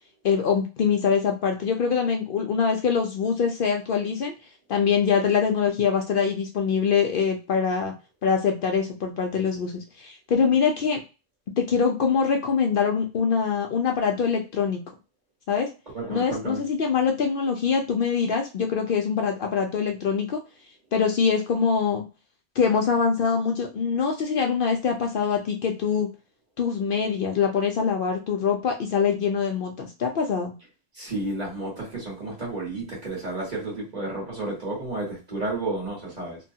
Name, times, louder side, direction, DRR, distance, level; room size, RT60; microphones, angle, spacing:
voice 1, 0.2-4.3 4.7-7.9 8.2-11.0 11.6-14.8 15.5-15.7 16.1-20.4 20.9-22.0 22.6-26.1 26.6-30.6, left 6 dB, 60° left, 2 dB, 0.6 m, -24 dB
voice 2, 15.9-16.6 30.9-36.4, right 2 dB, 40° right, -4 dB, 1.5 m, -31 dB
2.9 x 2.3 x 2.6 m, 0.30 s
omnidirectional pair, 1.1 m